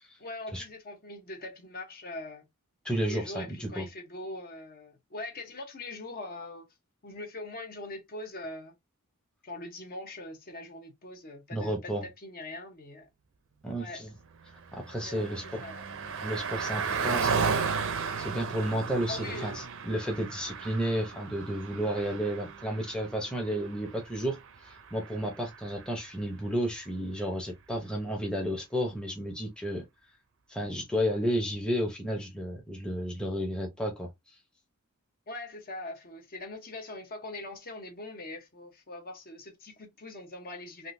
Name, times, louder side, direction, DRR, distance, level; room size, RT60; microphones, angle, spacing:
voice 1, 0.2-2.5 3.0-6.7 7.0-8.7 9.4-13.1 13.7-14.0 15.0-15.9 19.1-19.6 35.3-40.9, left 2 dB, 45° left, 0.8 m, -42 dB
voice 2, 2.8-3.8 11.5-12.0 13.6-14.1 14.7-15.6 16.2-17.5 18.2-24.4 24.6-29.8 30.5-34.1, equal, 5° left, 0.7 m, -32 dB
Car passing by, 14.3-26.0, right 5 dB, 60° right, 0.6 m, -35 dB
3.6 x 2.5 x 2.6 m
head